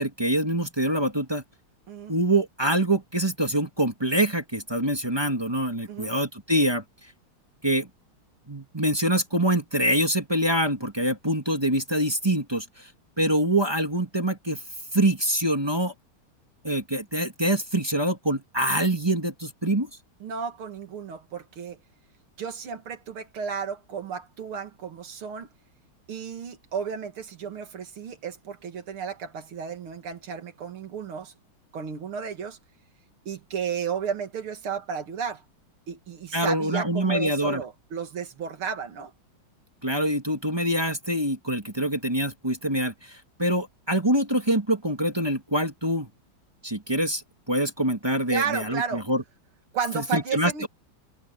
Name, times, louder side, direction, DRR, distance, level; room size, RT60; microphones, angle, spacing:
voice 1, 0.0-1.4 2.1-6.8 7.6-7.9 8.5-12.6 13.2-14.6 14.9-15.9 16.6-19.9 36.3-37.6 39.8-43.1 43.4-46.1 46.6-47.2 47.5-49.2 49.9-50.7, right 1 dB, 15° right, 1.6 m, -25 dB
voice 2, 20.2-21.8 22.4-25.5 26.1-31.3 31.7-32.6 33.3-35.4 35.9-39.1 48.3-49.1 49.7-50.7, right 7 dB, 85° right, 2.9 m, -33 dB
omnidirectional pair, 2.3 m